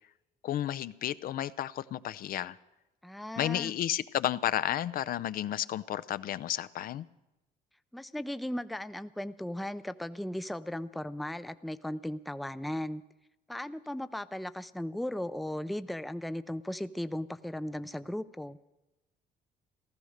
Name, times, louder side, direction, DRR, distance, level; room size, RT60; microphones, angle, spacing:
voice 1, 0.4-2.6 3.4-7.0, left 12 dB, 60° left, 0.5 m, -32 dB
voice 2, 3.0-3.7 7.9-13.0 13.5-18.6, left 1 dB, ahead, 0.5 m, -37 dB
16.0 x 13.5 x 6.5 m
cardioid pair, 110°, 17 cm